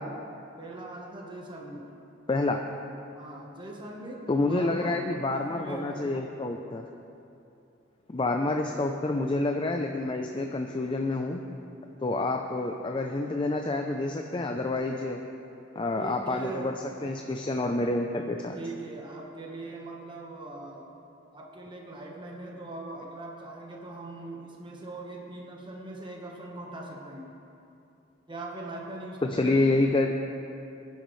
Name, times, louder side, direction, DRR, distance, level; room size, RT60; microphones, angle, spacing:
voice 1, 0.6-1.8 3.1-6.2 15.9-16.7 18.5-20.9 21.3-27.3 28.3-29.9, right 2 dB, 25° right, -1 dB, 1.2 m, -41 dB
voice 2, 2.3-2.6 4.3-6.9 8.1-11.4 12.0-15.2 15.8-16.8 17.0-18.6 29.2-30.1, left 2 dB, 25° left, 3 dB, 0.5 m, -28 dB
20.5 x 10.5 x 3.2 m, 2.8 s
head